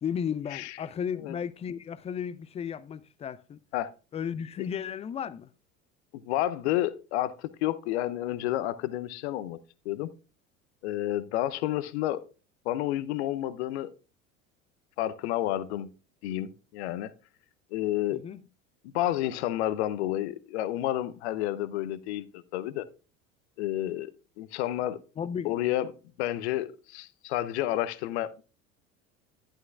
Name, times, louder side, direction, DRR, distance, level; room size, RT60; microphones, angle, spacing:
voice 1, 0.0-3.6 4.1-5.5 18.1-18.4 25.2-25.5, left 8 dB, 15° left, 0.4 m, -34 dB
voice 2, 6.2-9.6 9.8-10.1 10.8-12.2 12.6-13.9 15.0-15.9 16.2-17.1 17.7-18.2 18.8-22.8 23.6-24.1 24.4-25.0 25.4-25.9 26.2-28.4, left 14 dB, 55° left, 0.7 m, -30 dB
11.5 x 11.0 x 2.3 m
figure-of-eight pair, 70°, 39 cm